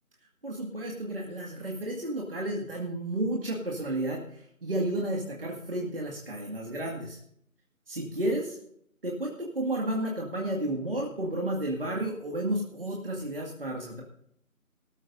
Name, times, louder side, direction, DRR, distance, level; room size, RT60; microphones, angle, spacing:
voice 1, 0.4-7.2 7.9-8.6 9.0-14.0, right 1 dB, 40° right, -1 dB, 2.1 m, -32 dB
21.0 x 13.5 x 2.7 m, 0.68 s
figure-of-eight pair, 165°, 43 cm